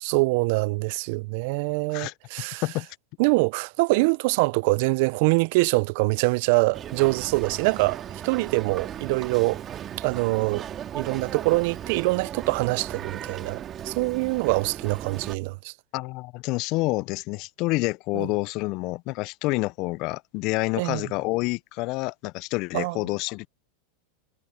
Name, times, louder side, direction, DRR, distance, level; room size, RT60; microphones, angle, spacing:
voice 1, 0.0-2.6 3.2-9.6 10.0-10.7 10.9-15.7 18.1-18.3 20.8-21.0 22.7-23.0, right 26 dB, 60° right, 0.4 m, -24 dB
Boat Water vehicle, 6.7-15.4, right 10 dB, 30° right, 1.9 m, -37 dB
voice 2, 15.9-23.5, left 23 dB, 50° left, 0.3 m, -28 dB
hypercardioid pair, 115°, 0 cm